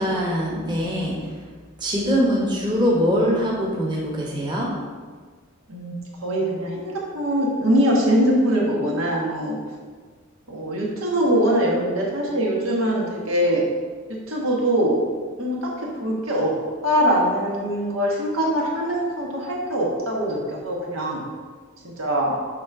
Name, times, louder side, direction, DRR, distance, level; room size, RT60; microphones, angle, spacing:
voice 1, 0.0-1.4 1.8-4.7, equal, 20° right, -4 dB, 1.1 m, -23 dB
voice 2, 5.7-9.6 10.5-13.7 14.1-15.0 15.4-16.5 16.8-21.2 21.8-22.4, equal, 85° right, -3 dB, 1.6 m, -22 dB
7.4 x 3.3 x 6.0 m, 1.5 s
head